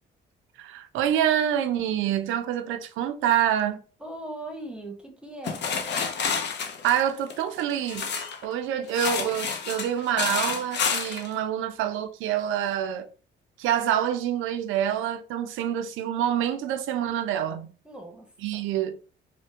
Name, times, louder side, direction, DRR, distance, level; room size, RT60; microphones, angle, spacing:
voice 1, 0.6-3.8 6.8-8.1 8.4-13.1 13.6-17.7 18.4-19.0, right 10 dB, 85° right, 0.4 m, -26 dB
voice 2, 4.0-5.7 17.8-18.7, right 1 dB, 5° right, 0.9 m, -39 dB
sound 1, 5.4-8.4 8.9-11.3, left 6 dB, 60° left, 0.6 m, -29 dB
3.4 x 2.1 x 2.8 m
cardioid pair, 90°, 20 cm